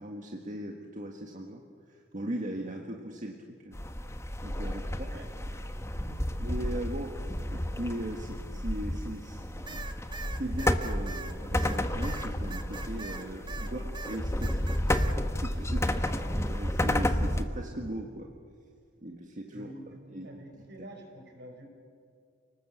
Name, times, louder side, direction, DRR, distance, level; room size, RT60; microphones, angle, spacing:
voice 1, 0.0-3.8 4.4-5.1 6.0-9.9 10.2-14.9 15.4-18.3 19.0-20.3 20.5-20.6, right 1 dB, 40° right, 2 dB, 1.7 m, -39 dB
sound 1, 3.7-17.4, left 1 dB, 15° left, 1.1 m, -31 dB
voice 2, 4.9-5.5 13.6-13.8 19.5-21.7, right 1 dB, 60° right, 3 dB, 5.7 m, -48 dB
sound 2, 9.7-13.7 13.9-15.2, right 4 dB, 25° right, 1.3 m, -42 dB
30.0 x 20.0 x 8.0 m, 2.2 s
head